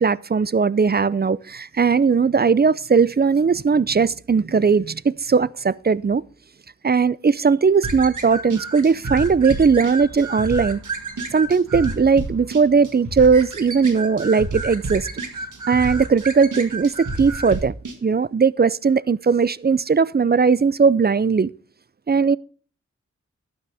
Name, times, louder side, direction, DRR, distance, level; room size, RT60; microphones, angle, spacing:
voice 1, 0.0-6.2 6.8-10.8 11.3-15.1 15.7-17.7 18.0-21.5 22.1-22.4, right 5 dB, 35° right, 0.4 m, -18 dB
sound 1, 7.8-18.0, right 2 dB, 85° right, 1.7 m, -30 dB
12.0 x 9.3 x 3.4 m
cardioid pair, 45°, 30 cm